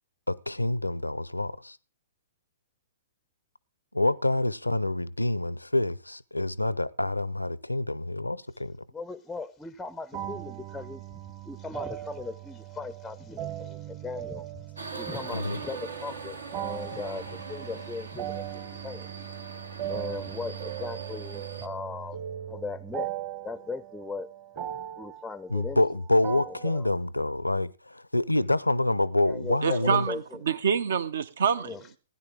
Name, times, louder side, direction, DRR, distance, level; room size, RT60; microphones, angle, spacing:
voice 1, 0.3-1.8 3.9-8.8 15.3-15.6 25.5-30.1, left 1 dB, 85° left, 0.5 m, -27 dB
voice 2, 8.9-14.7 15.0-19.1 19.9-22.2 22.5-23.1 23.4-24.3 25.0-25.8 26.3-26.9 29.3-30.4 31.6-31.9, left 4 dB, 5° left, 0.5 m, -38 dB
sound 1, 10.1-26.8, right 12 dB, 35° right, 1.4 m, -39 dB
Subway metro underground, 14.8-21.7, right 3 dB, 75° right, 1.2 m, -42 dB
voice 3, 29.6-31.7, right 7 dB, 60° right, 0.7 m, -26 dB
16.0 x 10.0 x 3.8 m
figure-of-eight pair, 115°, 0 cm